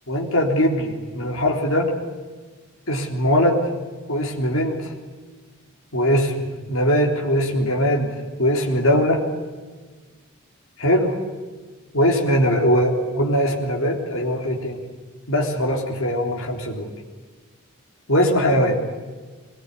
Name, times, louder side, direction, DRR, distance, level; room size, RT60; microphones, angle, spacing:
voice 1, 0.1-1.9 2.9-3.7 4.1-4.9 5.9-9.3 10.8-11.2 11.9-14.8 15.3-16.9 18.1-18.8, equal, 70° left, 0 dB, 3.7 m, -21 dB
23.5 x 20.5 x 9.9 m, 1.4 s
head